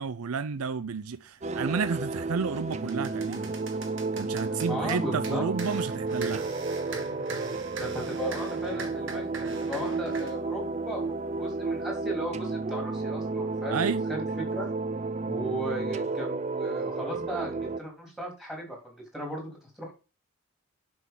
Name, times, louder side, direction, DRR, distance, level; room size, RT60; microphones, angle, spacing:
voice 1, 0.0-3.5 4.2-6.5 13.7-14.0, right 5 dB, 85° right, 0.5 m, -31 dB
sound 1, 1.4-17.8, right 3 dB, 30° right, 0.4 m, -32 dB
sound 2, 1.5-1.7 2.2-10.4, right 4 dB, 60° right, 1.7 m, -42 dB
voice 2, 4.5-5.4 7.8-13.8 14.1-14.7 15.2-19.5 19.8-19.9, equal, ahead, 3.5 m, -36 dB
7.6 x 6.3 x 5.4 m
head